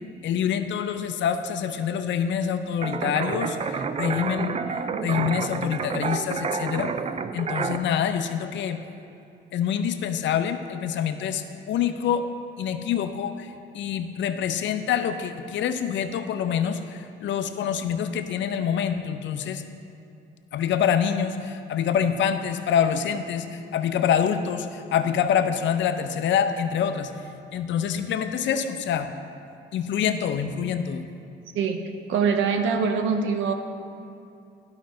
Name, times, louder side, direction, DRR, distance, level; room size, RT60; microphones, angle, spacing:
voice 1, 0.2-4.5 5.0-6.9 7.3-8.8 9.5-12.3 12.6-19.6 20.5-27.1 27.5-29.1 29.7-31.1, left 8 dB, 70° left, 9 dB, 0.6 m, -26 dB
sound 1, 2.8-7.8, right 5 dB, 30° right, 0.4 m, -29 dB
voice 2, 32.1-33.5, right 5 dB, 80° right, 6 dB, 0.7 m, -23 dB
11.5 x 5.3 x 3.8 m, 2.6 s
cardioid pair, 90°, 20 cm